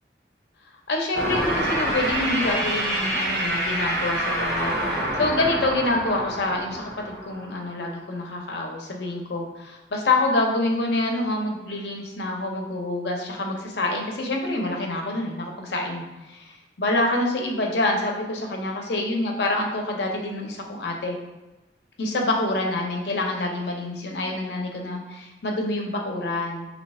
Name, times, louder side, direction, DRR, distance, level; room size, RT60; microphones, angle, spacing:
voice 1, 0.9-21.2 22.0-26.7, left 2 dB, 70° left, 1 dB, 0.7 m, -27 dB
sound 1, 1.1-7.7, right 1 dB, 70° right, 1.0 m, -27 dB
3.2 x 2.9 x 4.2 m, 1.1 s
head